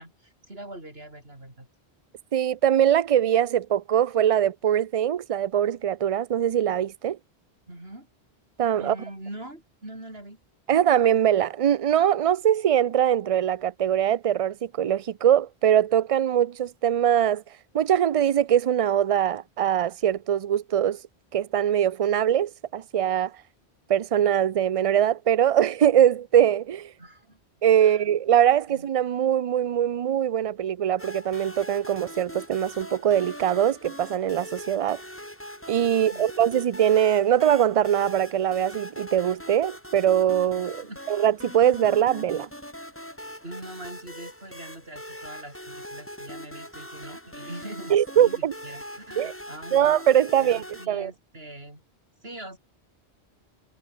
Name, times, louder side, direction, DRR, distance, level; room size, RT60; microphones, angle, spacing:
voice 1, 0.0-1.7 7.7-8.1 8.8-10.4 27.0-27.4 27.8-28.0 28.7-28.9 35.9-36.3 40.6-41.0 43.4-49.9 50.4-51.8 52.2-52.6, right 1 dB, 65° right, 7.6 m, -42 dB
voice 2, 2.3-7.2 8.6-9.0 10.7-17.4 17.7-21.0 21.3-23.3 23.9-26.9 27.6-35.0 35.7-42.5 47.9-48.5 49.2-49.3 49.7-51.1, right 10 dB, 50° right, 0.4 m, -22 dB
sound 1, 31.0-50.9, equal, 10° left, 4.8 m, -41 dB
omnidirectional pair, 1.1 m